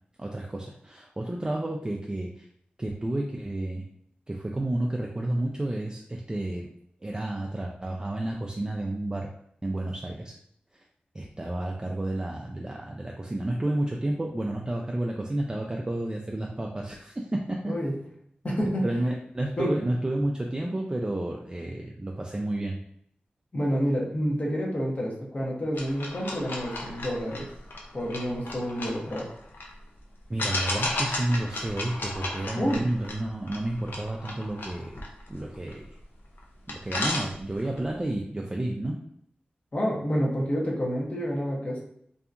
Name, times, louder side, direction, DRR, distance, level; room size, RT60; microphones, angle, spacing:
voice 1, 0.2-2.5 2.8-3.8 4.3-6.7 7.0-9.3 9.6-10.4 11.1-17.7 18.8-22.8 30.3-35.8 36.7-39.0, right 1 dB, 20° right, 0 dB, 0.3 m, -31 dB
voice 2, 17.7-18.0 18.4-18.9 19.6-19.8 23.5-27.5 27.9-29.3 32.6-32.9 39.7-41.8, equal, 45° left, -3 dB, 0.9 m, -28 dB
sound 1, 25.7-29.7 30.4-36.0 36.4-36.5 36.7-37.8, left 2 dB, 80° left, 0.5 m, -34 dB
2.7 x 2.3 x 2.5 m, 0.68 s
cardioid pair, 45°, 3 cm